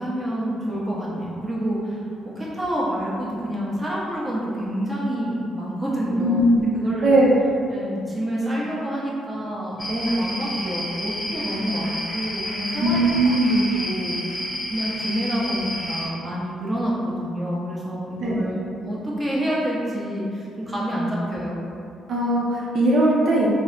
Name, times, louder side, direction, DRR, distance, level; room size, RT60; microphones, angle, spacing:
voice 1, 0.0-2.1 2.4-6.4 6.7-7.2 7.7-21.6, equal, 10° right, -7 dB, 0.8 m, -28 dB
voice 2, 6.2-6.7 7.0-7.4 12.8-13.7 18.2-18.5 22.1-23.5, right 1 dB, 65° right, -5 dB, 0.5 m, -19 dB
sound 1, 9.8-16.1, left 1 dB, 25° left, 1.2 m, -30 dB
3.4 x 2.0 x 3.2 m, 2.5 s
cardioid pair, 90°, 0 cm